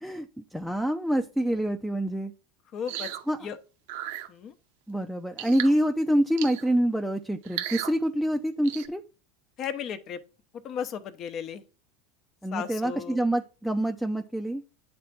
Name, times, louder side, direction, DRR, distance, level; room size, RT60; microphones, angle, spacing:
voice 1, 0.0-2.3 3.3-3.5 4.9-9.0 12.4-14.6, right 1 dB, ahead, 0.6 m, -26 dB
voice 2, 2.7-3.1 3.4-3.6 4.3-4.5 9.6-10.2 10.6-11.6 12.5-13.2, left 8 dB, 45° left, 0.9 m, -35 dB
sound 1, 2.9-3.2 3.9-4.3 5.4-5.7 6.4-6.7 7.4-7.9 8.6-8.9, right 12 dB, 70° right, 0.7 m, -35 dB
9.1 x 3.4 x 4.2 m
hypercardioid pair, 100°, 0 cm